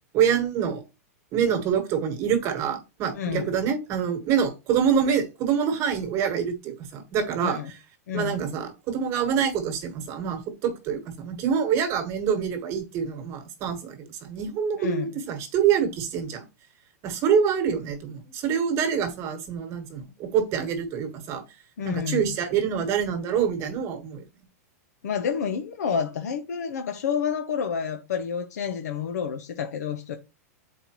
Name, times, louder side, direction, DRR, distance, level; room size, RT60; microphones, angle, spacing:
voice 1, 0.1-0.8 1.3-7.6 8.1-16.4 17.0-21.4 21.8-24.2, right 7 dB, 35° right, 1.3 m, -26 dB
voice 2, 3.1-3.5 7.4-7.7 8.1-8.5 14.8-15.1 21.8-22.4 25.0-30.2, left 7 dB, 85° left, 0.8 m, -29 dB
8.0 x 4.3 x 3.0 m
supercardioid pair, 145°, 9 cm